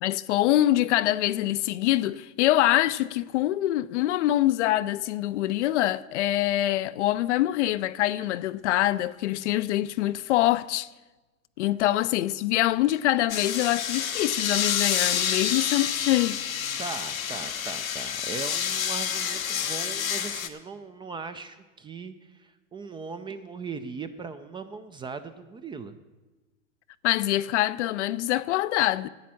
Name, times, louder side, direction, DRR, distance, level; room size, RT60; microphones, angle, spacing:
voice 1, 0.0-10.9 11.6-16.4 27.0-29.1, left 15 dB, 60° left, 0.5 m, -24 dB
sound 1, 13.3-20.5, left 8 dB, 90° left, 1.0 m, -28 dB
voice 2, 16.8-25.9, right 5 dB, 15° right, 0.4 m, -39 dB
10.5 x 8.3 x 7.5 m
hypercardioid pair, 100°, 40 cm